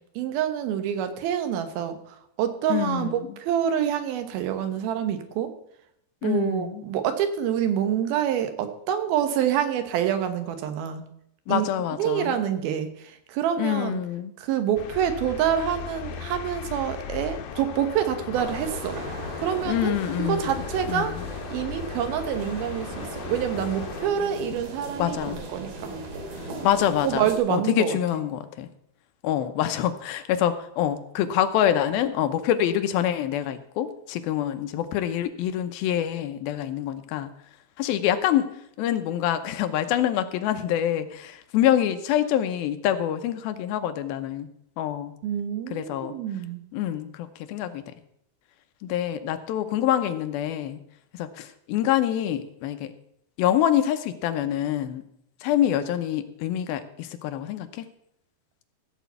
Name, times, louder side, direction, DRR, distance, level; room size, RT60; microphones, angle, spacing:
voice 1, 0.2-5.5 6.2-11.1 11.5-11.7 11.9-14.0 14.4-19.0 19.4-19.9 20.3-21.2 21.5-25.9 26.5-26.7 27.0-28.2 45.2-46.6, right 9 dB, 85° right, 8 dB, 3.0 m, -27 dB
voice 2, 2.7-3.2 6.2-6.8 11.5-12.4 13.6-14.3 19.7-21.2 25.0-25.4 26.6-28.7 29.2-37.3 37.8-44.5 44.8-45.1 45.7-46.1 46.7-47.8 48.8-50.8 51.1-52.9 53.4-55.0 55.4-57.9, left 11 dB, 85° left, 9 dB, 2.7 m, -26 dB
sound 1, 14.8-24.1, left 8 dB, 70° left, 2.1 m, -37 dB
sound 2, 18.3-27.4, right 1 dB, 65° right, 4.0 m, -37 dB
15.0 x 5.1 x 8.1 m, 0.75 s
omnidirectional pair, 4.2 m